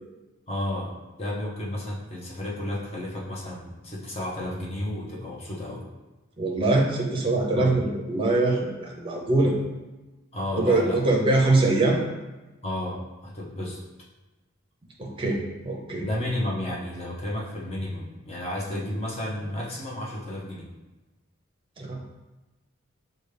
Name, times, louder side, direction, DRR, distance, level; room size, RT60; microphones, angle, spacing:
voice 1, 0.5-0.9 1.2-5.8 7.5-7.8 10.3-11.0 12.6-13.8 16.0-20.7, left 1 dB, 30° left, -5 dB, 0.9 m, -32 dB
voice 2, 6.4-9.5 10.5-12.0 15.0-16.1 21.8-22.0, right 2 dB, 25° right, -1 dB, 0.7 m, -23 dB
6.0 x 2.3 x 3.3 m, 1.1 s
head